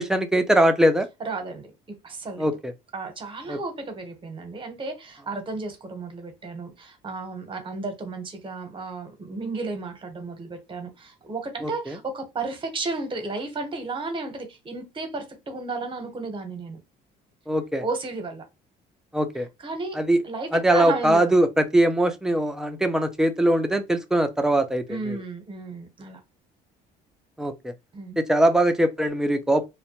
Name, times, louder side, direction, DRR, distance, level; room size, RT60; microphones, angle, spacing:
voice 1, 0.0-1.1 2.4-2.7 3.5-3.6 11.6-12.0 17.5-17.8 19.1-19.5 19.9-20.2 20.5-25.2 27.4-27.7 28.2-29.7, right 1 dB, 5° right, 0.4 m, -21 dB
voice 2, 1.2-2.5 2.9-16.8 17.8-18.5 19.6-20.0 20.2-21.3 24.9-26.2 27.9-28.2, right 3 dB, 30° right, 0.8 m, -33 dB
2.1 x 2.1 x 2.8 m
cardioid pair, 105°, 18 cm